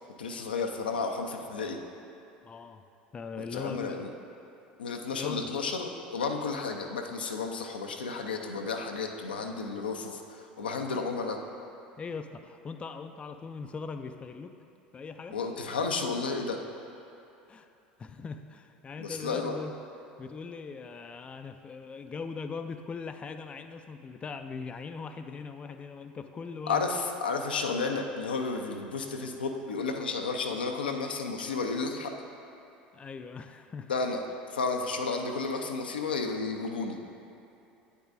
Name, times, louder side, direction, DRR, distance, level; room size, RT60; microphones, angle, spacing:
voice 1, 0.2-1.8 3.5-4.1 4.8-11.4 15.3-16.6 19.0-19.6 26.7-32.1 33.9-34.2 34.5-37.1, left 4 dB, 85° left, 3 dB, 0.5 m, -32 dB
voice 2, 2.4-2.8 3.1-4.0 5.1-5.5 12.0-14.6 14.9-15.4 17.5-17.7 18.0-19.7 20.2-26.9 32.9-33.9, left 5 dB, 25° left, 8 dB, 0.3 m, -40 dB
8.6 x 8.1 x 2.5 m, 2.8 s
hypercardioid pair, 75°, 5 cm